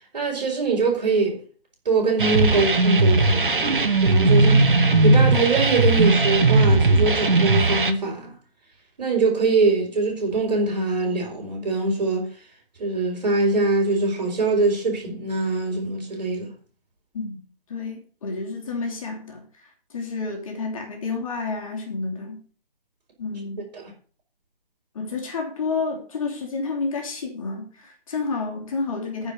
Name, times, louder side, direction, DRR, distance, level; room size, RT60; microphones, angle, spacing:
voice 1, 0.1-1.4 1.9-4.6 5.0-8.3 9.0-12.3 12.8-16.5 23.7-23.8, right 3 dB, 45° right, 5.3 m, -23 dB
sound 1, 2.2-7.9, right 2 dB, 60° right, 1.5 m, -18 dB
voice 2, 17.7-19.5 19.9-22.4 23.2-23.7 24.9-29.3, left 4 dB, 35° left, 2.8 m, -30 dB
9.9 x 5.4 x 7.8 m
figure-of-eight pair, 140°, 30 cm